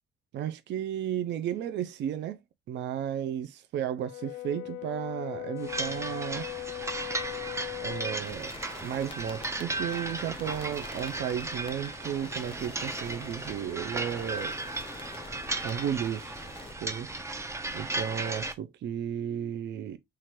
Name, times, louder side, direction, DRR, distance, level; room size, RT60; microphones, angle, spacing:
voice 1, 0.3-2.4 2.7-6.5 7.8-8.5 8.8-14.5 15.6-16.3 16.8-17.1 17.7-20.0, right 9 dB, 65° right, 0.4 m, -33 dB
Brass instrument, 4.0-8.3, left 15 dB, 85° left, 0.4 m, -39 dB
sound 1, 5.6-18.5, right 2 dB, 15° right, 0.5 m, -36 dB
sound 2, 8.2-16.7, left 3 dB, 25° left, 0.9 m, -47 dB
3.0 x 2.4 x 4.3 m
cardioid pair, 90°, 20 cm